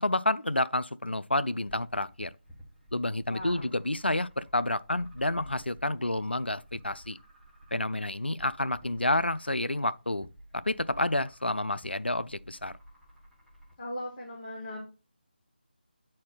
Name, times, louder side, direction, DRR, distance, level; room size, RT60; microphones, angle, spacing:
voice 1, 0.0-2.3 2.9-7.2 7.7-10.3 10.5-12.7, left 1 dB, 90° left, 0.4 m, -29 dB
sound 1, 1.6-13.7, equal, ahead, 1.5 m, -53 dB
voice 2, 3.3-3.7 13.8-14.8, left 1 dB, 25° left, 2.2 m, -38 dB
8.3 x 4.3 x 4.0 m
figure-of-eight pair, 160°, 6 cm